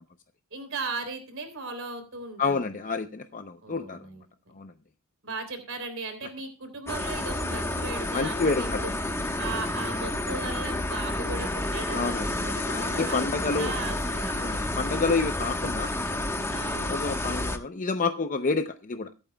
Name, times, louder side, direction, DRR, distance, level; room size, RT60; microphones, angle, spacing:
voice 1, 0.5-2.6 3.6-4.2 5.2-14.5 14.9-15.0 16.5-16.9, right 3 dB, 65° right, 7 dB, 3.4 m, -37 dB
voice 2, 2.4-4.0 4.6-4.7 8.1-8.9 11.9-12.3 12.7-13.7 14.3-19.1, left 4 dB, 40° left, 8 dB, 0.6 m, -29 dB
sound 1, 6.9-17.6, left 1 dB, 10° left, 1.1 m, -30 dB
23.0 x 8.9 x 2.3 m, 0.32 s
head